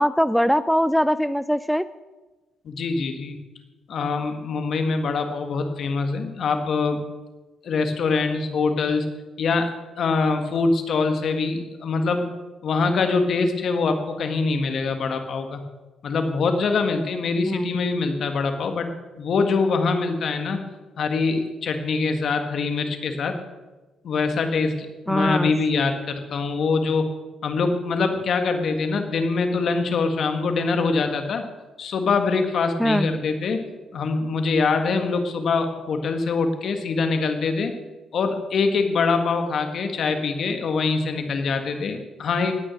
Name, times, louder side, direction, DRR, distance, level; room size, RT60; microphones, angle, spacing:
voice 1, 0.0-1.9 17.4-17.7 25.1-25.5 32.8-33.1, equal, ahead, 14 dB, 0.4 m, -21 dB
voice 2, 2.7-3.4 3.9-7.0 7.6-9.1 9.4-12.3 12.6-15.6 16.0-20.6 21.0-23.4 24.0-24.7 25.1-27.1 27.4-31.4 31.8-33.6 33.9-37.7 38.1-42.6, left 4 dB, 60° left, 6 dB, 1.6 m, -24 dB
18.5 x 6.2 x 6.4 m, 1.2 s
cardioid pair, 90°, 0 cm